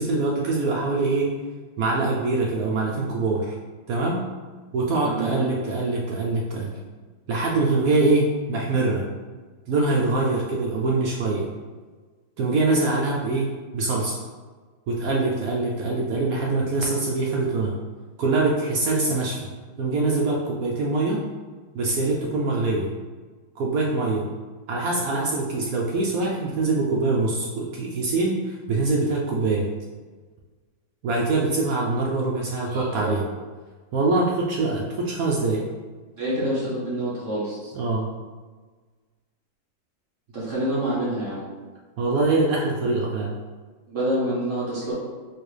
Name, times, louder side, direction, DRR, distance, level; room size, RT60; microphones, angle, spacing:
voice 1, 0.0-1.3 1.8-3.6 3.9-4.2 4.7-6.8 7.3-9.0 9.7-11.5 12.4-14.2 14.9-17.7 18.2-19.4 19.8-21.2 21.7-22.9 23.6-24.2 24.7-29.7 31.0-33.2 33.9-35.7 37.7-38.1 42.0-43.3, right 3 dB, 75° right, -3 dB, 0.8 m, -24 dB
voice 2, 5.0-5.4 32.7-33.1 36.1-37.7 40.3-41.5 43.9-44.9, right 1 dB, 50° right, -8 dB, 1.1 m, -27 dB
4.4 x 2.3 x 3.2 m, 1.4 s
omnidirectional pair, 2.0 m